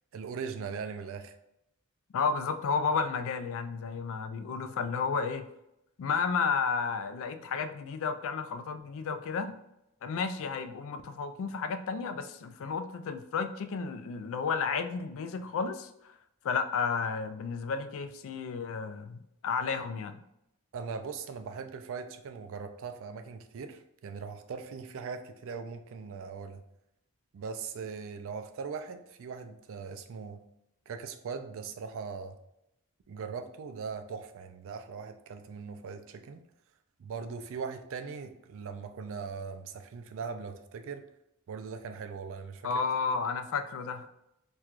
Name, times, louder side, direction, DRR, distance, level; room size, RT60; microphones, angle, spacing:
voice 1, 0.1-1.3 20.7-26.6 27.3-30.4 30.9-32.4 33.1-36.4 37.0-41.0 41.5-42.7 43.1-43.2, right 5 dB, 65° right, 8 dB, 0.4 m, -40 dB
voice 2, 2.1-5.5 6.0-9.6 10.0-16.1 16.4-20.2 42.6-44.1, left 5 dB, 65° left, 9 dB, 0.3 m, -32 dB
4.4 x 2.3 x 2.4 m, 0.83 s
head